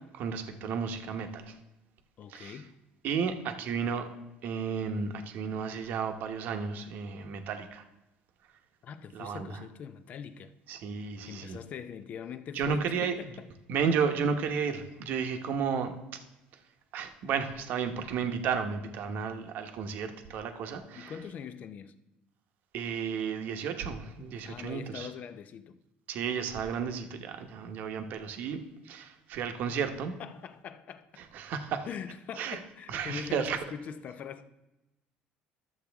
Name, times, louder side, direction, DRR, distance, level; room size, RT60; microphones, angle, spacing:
voice 1, 0.1-1.5 2.3-2.6 3.0-4.1 4.4-7.8 9.1-9.5 10.7-11.6 12.5-13.1 13.7-15.9 16.9-21.1 22.7-25.1 26.1-30.1 31.3-31.9 32.4-32.6 32.9-33.6, right 6 dB, 60° right, 0.9 m, -33 dB
voice 2, 2.2-2.8 8.8-10.5 11.3-13.5 21.0-21.9 24.5-25.8 30.2-31.2 31.8-34.5, left 7 dB, 45° left, 0.6 m, -42 dB
12.0 x 7.2 x 3.5 m
cardioid pair, 125°, 4 cm